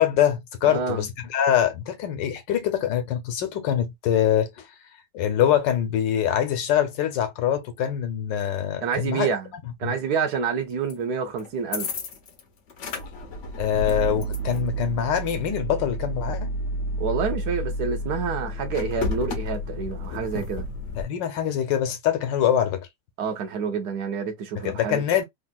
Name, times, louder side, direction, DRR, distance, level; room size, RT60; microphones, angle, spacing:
voice 1, 0.0-4.7 5.1-9.3 9.8-9.9 13.6-16.5 20.9-22.9 24.6-25.2, left 10 dB, 80° left, 1.4 m, -24 dB
voice 2, 0.7-1.0 8.8-9.5 9.8-11.9 17.0-20.7 23.2-25.0, right 6 dB, 65° right, 1.2 m, -28 dB
sound 1, 10.9-11.0 11.4-12.4 12.7-21.0, equal, 60° left, 0.8 m, -31 dB
3.5 x 2.4 x 2.3 m
omnidirectional pair, 1.9 m